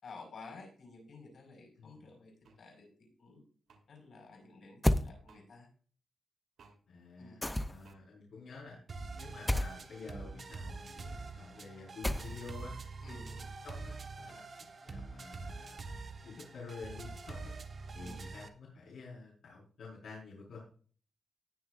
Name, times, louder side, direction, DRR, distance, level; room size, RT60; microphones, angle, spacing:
voice 1, 0.0-2.9 3.2-3.4 3.9-5.7 7.2-7.4 13.0-13.5 18.0-18.2, left 3 dB, 60° left, 2 dB, 5.1 m, -52 dB
voice 2, 1.8-2.1 6.9-8.8 9.1-12.7 13.2-13.3 13.6-14.4 14.8-15.9 16.2-17.5 17.9-20.6, left 4 dB, 80° left, -6 dB, 4.8 m, -49 dB
sound 1, 2.4-2.6 3.7-3.8 5.3-5.5 6.6-6.8 7.8-8.0, right 4 dB, 75° right, 3.2 m, -60 dB
sound 2, 4.8-5.1 7.4-7.9 9.5-9.7 12.0-12.6, left 1 dB, 10° left, 0.6 m, -30 dB
sound 3, 8.9-18.5, right 3 dB, 40° right, 1.3 m, -45 dB
19.5 x 6.8 x 2.5 m, 0.42 s
wide cardioid pair, 135°, 0 cm